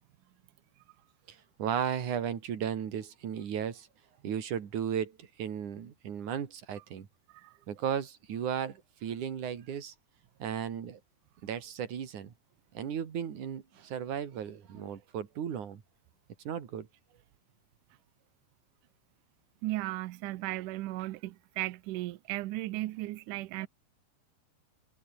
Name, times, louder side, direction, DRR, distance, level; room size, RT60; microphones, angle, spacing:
voice 1, 1.3-3.9 4.2-7.1 7.7-9.9 10.4-11.0 11.4-12.3 12.7-15.8 16.5-16.9, right 8 dB, 55° right, 3.6 m, -35 dB
voice 2, 19.6-23.7, right 17 dB, 80° right, 1.8 m, -36 dB
omnidirectional pair, 4.6 m